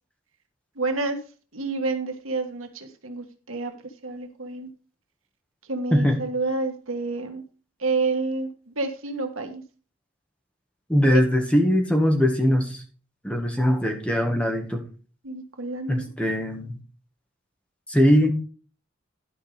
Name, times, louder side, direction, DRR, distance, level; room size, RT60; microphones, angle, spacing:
voice 1, 0.7-1.2 1.5-4.7 5.7-7.4 7.8-9.6 11.0-11.2 15.2-16.1, right 3 dB, 80° right, 6 dB, 1.5 m, -29 dB
voice 2, 10.9-12.8 13.2-14.8 15.9-16.7 17.9-18.3, equal, 5° left, 3 dB, 1.6 m, -21 dB
12.0 x 5.2 x 4.9 m, 0.37 s
head